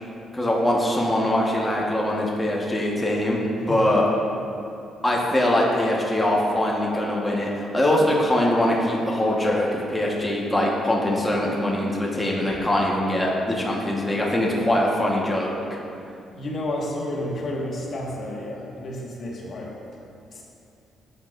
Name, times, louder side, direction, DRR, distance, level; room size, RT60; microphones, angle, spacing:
voice 1, 0.3-4.0 5.0-15.5, left 1 dB, 10° left, -4 dB, 1.2 m, -22 dB
voice 2, 16.3-19.8 20.3-20.4, left 1 dB, 55° left, -3 dB, 1.6 m, -31 dB
11.5 x 7.9 x 2.5 m, 2.6 s
cardioid pair, 90°, 0 cm